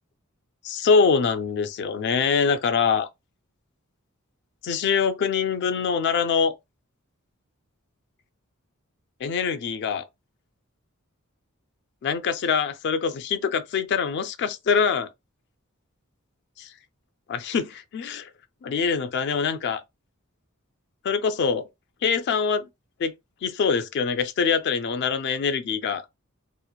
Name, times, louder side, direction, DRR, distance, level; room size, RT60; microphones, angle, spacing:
voice 1, 0.6-3.1 4.6-6.5 9.2-10.0 12.0-15.1 16.6-16.7 17.3-18.3 18.6-19.8 21.0-21.7 22.0-22.7 23.0-23.1 23.4-26.0, left 5 dB, 55° left, 0.3 m, -24 dB
2.9 x 2.0 x 2.3 m
head